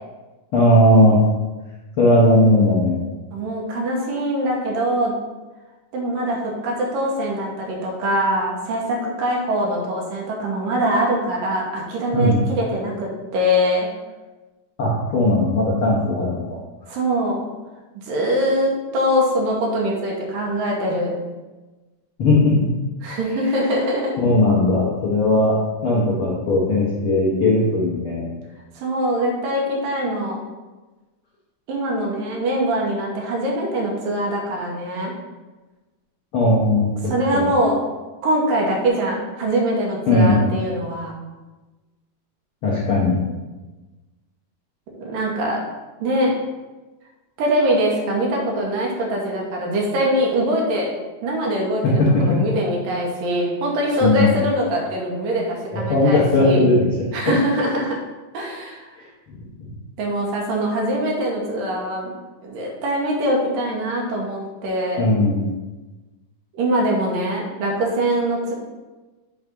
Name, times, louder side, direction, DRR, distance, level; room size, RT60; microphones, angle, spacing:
voice 1, 0.5-1.2 2.0-3.0 12.1-12.4 14.8-16.6 22.2-22.5 24.2-25.6 25.8-28.2 36.3-36.8 37.3-37.5 40.1-40.6 42.6-43.2 52.0-52.1 54.0-54.4 55.7-56.8 59.3-59.4 65.0-65.5, left 1 dB, 90° left, -5 dB, 1.2 m, -17 dB
voice 2, 3.3-5.2 5.9-13.9 16.9-17.4 18.0-21.2 23.0-24.2 28.8-30.4 31.7-35.1 37.0-37.8 38.2-41.1 45.0-45.6 46.0-46.3 47.4-50.9 51.2-56.7 57.1-58.0 58.3-58.9 60.0-62.1 62.4-65.1 66.5-68.5, equal, 70° right, -1 dB, 2.7 m, -23 dB
7.9 x 3.5 x 5.3 m, 1.2 s
omnidirectional pair, 4.3 m